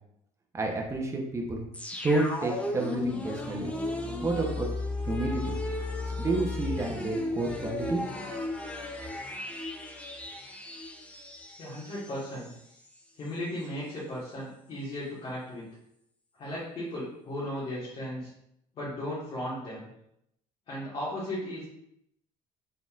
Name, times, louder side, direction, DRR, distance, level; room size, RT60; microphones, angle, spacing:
voice 1, 0.5-1.7 2.0-3.7 4.2-4.7 5.0-5.5 6.2-8.0, right 2 dB, 20° right, 1 dB, 0.7 m, -30 dB
sound 1, 1.7-12.6 12.9-13.0, left 2 dB, 10° left, 0.6 m, -35 dB
voice 2, 11.6-12.5 13.2-15.7 16.4-18.3 18.7-19.9 20.7-21.7, left 1 dB, 45° left, -8 dB, 1.5 m, -36 dB
4.0 x 3.9 x 2.4 m, 0.78 s
cardioid pair, 105°, 13 cm